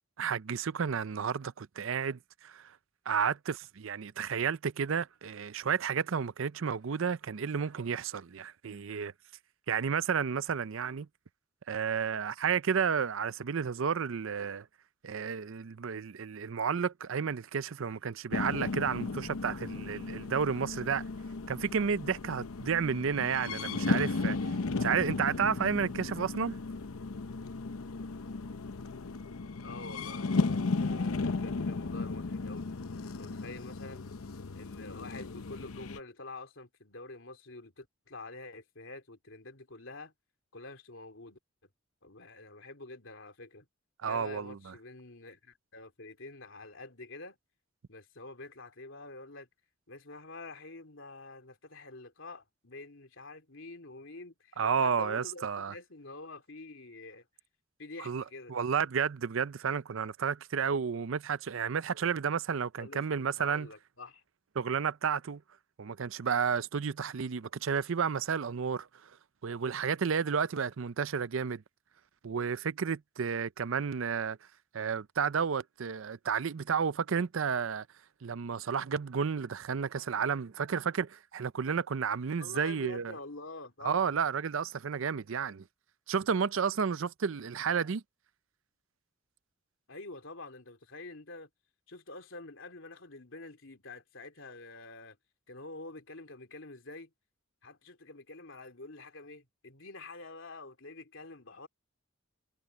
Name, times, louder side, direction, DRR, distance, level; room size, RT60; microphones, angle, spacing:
voice 1, 0.2-2.7 3.1-9.1 9.7-11.1 11.7-14.7 15.0-21.0 21.5-24.4 24.8-26.5 44.0-44.6 54.6-55.7 58.1-58.2 58.5-63.7 64.6-65.4 65.8-68.9 69.4-71.6 72.2-74.4 74.7-77.9 78.2-83.1 83.8-85.6 86.1-88.0, right 6 dB, 65° right, 0.5 m, -31 dB
sound 1, 18.3-36.0, left 3 dB, 85° left, 0.8 m, -35 dB
voice 2, 29.6-32.7 33.2-34.0 34.5-40.1 40.5-41.4 42.0-43.7 44.0-47.4 47.9-49.5 49.9-57.3 57.8-58.5 62.8-64.2 82.4-84.2 89.9-91.5 91.9-95.2 95.5-97.1 97.6-101.7, left 2 dB, 65° left, 3.3 m, -47 dB
head